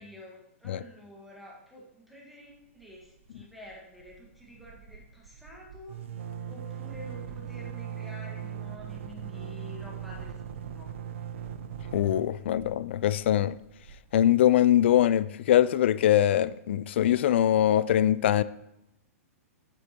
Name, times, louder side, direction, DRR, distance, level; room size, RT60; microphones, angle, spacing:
voice 1, 0.0-6.0 6.5-10.9, left 1 dB, ahead, 1.5 m, -48 dB
sound 1, 2.8-3.3 3.6-3.7 4.0-14.7, right 8 dB, 55° right, 0.5 m, -40 dB
voice 2, 11.9-13.6 14.1-18.4, left 11 dB, 50° left, 0.3 m, -22 dB
8.1 x 8.0 x 2.9 m
hypercardioid pair, 170°, 8 cm